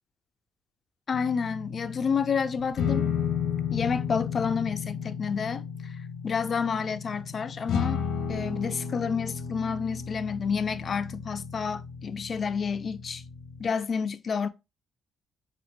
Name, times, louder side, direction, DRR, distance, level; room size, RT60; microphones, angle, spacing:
sound 1, 1.1-13.7, left 7 dB, 85° left, 0.7 m, -33 dB
voice 1, 1.1-3.1 3.7-5.9 6.2-8.0 8.3-13.2 13.6-14.5, left 6 dB, 45° left, 0.3 m, -29 dB
4.2 x 2.4 x 2.8 m
cardioid pair, 90°, 0 cm